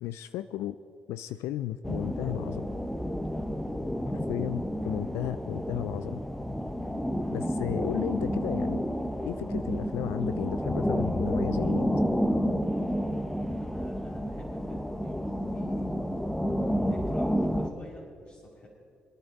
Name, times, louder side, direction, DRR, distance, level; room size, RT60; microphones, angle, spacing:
voice 1, 0.0-0.8 1.1-2.7 4.1-6.2 7.3-8.8 9.2-12.0, left 13 dB, 85° left, 13 dB, 0.3 m, -34 dB
sound 1, 1.8-17.7, equal, 5° left, 1.2 m, -30 dB
voice 2, 3.6-3.9 13.0-15.9 16.8-18.7, left 1 dB, 55° left, -6 dB, 3.0 m, -50 dB
26.5 x 9.7 x 4.1 m, 2.4 s
supercardioid pair, 55°, 4 cm